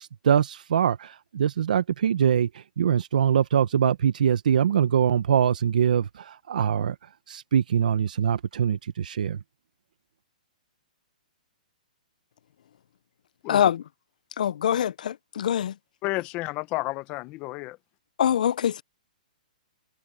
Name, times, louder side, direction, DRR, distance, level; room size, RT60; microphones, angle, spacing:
voice 1, 0.0-6.9 7.3-9.4, right 8 dB, 70° right, 1.0 m, -23 dB
voice 2, 13.5-13.8 14.4-15.7 18.2-18.8, left 9 dB, 65° left, 0.5 m, -24 dB
voice 3, 16.0-17.8, left 20 dB, 25° left, 0.9 m, -31 dB
hypercardioid pair, 155°, 4 cm